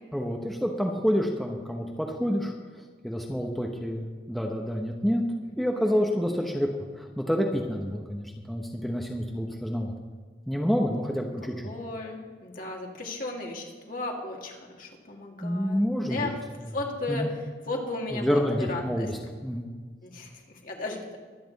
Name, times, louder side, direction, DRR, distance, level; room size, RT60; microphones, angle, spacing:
voice 1, 0.1-5.2 5.6-6.7 7.0-9.9 10.5-11.5 15.4-16.3 17.1-17.3 18.1-19.2 19.4-19.7, equal, ahead, 0 dB, 1.0 m, -28 dB
voice 2, 5.8-6.2 11.4-15.8 16.1-16.4 16.7-19.1 20.0-21.2, left 2 dB, 50° left, 0 dB, 2.4 m, -35 dB
23.0 x 8.6 x 4.1 m, 1.5 s
head